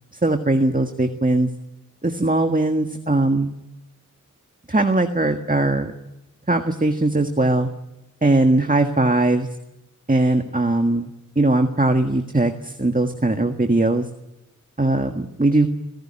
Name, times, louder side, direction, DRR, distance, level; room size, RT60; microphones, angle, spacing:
voice 1, 0.2-1.5 2.0-3.5 4.7-5.9 6.5-7.7 8.2-9.5 10.1-14.0 14.8-15.7, right 2 dB, 25° right, 5 dB, 1.6 m, -20 dB
26.5 x 16.5 x 10.0 m, 0.94 s
wide cardioid pair, 50°, 32 cm